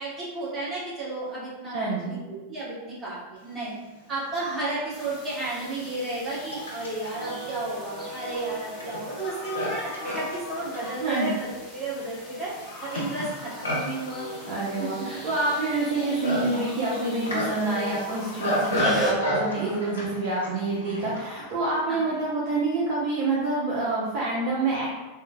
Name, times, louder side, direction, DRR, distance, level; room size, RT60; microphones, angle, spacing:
voice 1, 0.0-1.8 2.0-3.7 4.1-11.5 11.7-12.5 12.8-14.2 18.7-18.9 21.9-22.0, right 2 dB, 15° right, -8 dB, 1.0 m, -33 dB
voice 2, 1.7-2.2 11.0-11.3 14.4-24.9, right 2 dB, 45° right, -6 dB, 0.5 m, -27 dB
Livestock farm animals working animals, 4.5-4.6 5.4-21.3, equal, 75° left, 0.6 m, -33 dB
sound 1, 4.9-19.1, equal, 10° left, 0.8 m, -39 dB
sound 2, 9.2-11.5 12.6-14.9 16.5-16.9 18.1-18.6 19.5-20.1 21.1-21.6, left 3 dB, 40° left, 0.8 m, -43 dB
3.0 x 2.0 x 2.2 m, 1.1 s
figure-of-eight pair, 90°, 0 cm